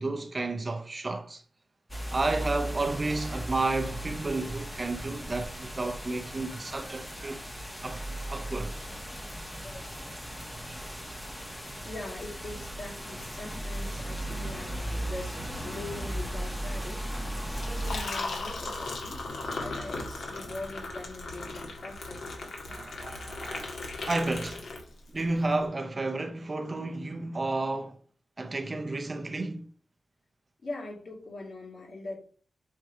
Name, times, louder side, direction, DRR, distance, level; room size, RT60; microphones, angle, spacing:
voice 1, 0.0-1.4 2.1-7.4 7.8-8.8 22.7-23.7 24.1-24.7 25.1-28.0 28.4-29.7, right 2 dB, 30° right, 0.6 m, -32 dB
sound 1, 1.9-18.0, right 1 dB, 10° left, 1.1 m, -37 dB
voice 2, 9.6-10.2 11.8-17.1 17.7-19.2 19.6-22.5 30.6-32.2, left 2 dB, 55° left, 2.2 m, -42 dB
Liquid, 17.5-25.2, left 2 dB, 75° left, 1.7 m, -37 dB
6.4 x 3.3 x 4.5 m
wide cardioid pair, 160°, 0 cm